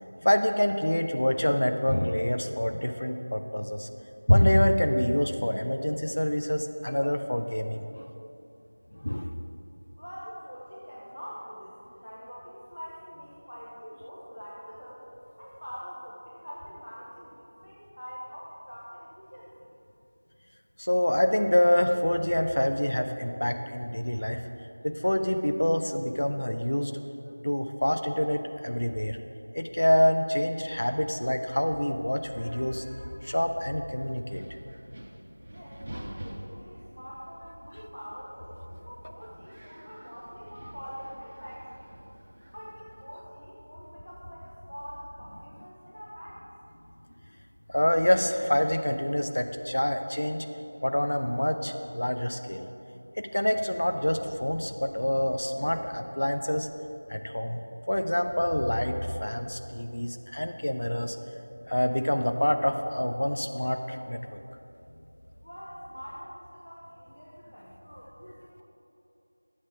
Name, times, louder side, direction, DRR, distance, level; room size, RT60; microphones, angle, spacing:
voice 1, 0.2-3.9 4.3-8.0 9.0-9.4 20.8-24.4 24.8-26.9 27.4-29.2 29.5-34.4 47.7-50.5 50.8-52.7 53.2-56.7 57.1-57.6 57.9-61.2 61.7-64.4, left 1 dB, 50° left, 6 dB, 0.5 m, -26 dB
voice 2, 10.0-15.0 15.4-19.7 35.5-42.0 42.5-46.5 65.4-68.6, equal, 80° left, -6 dB, 1.9 m, -44 dB
Wind, 33.7-43.2, right 1 dB, 25° right, 0.6 m, -47 dB
11.0 x 8.6 x 3.8 m, 2.8 s
figure-of-eight pair, 175°, 0 cm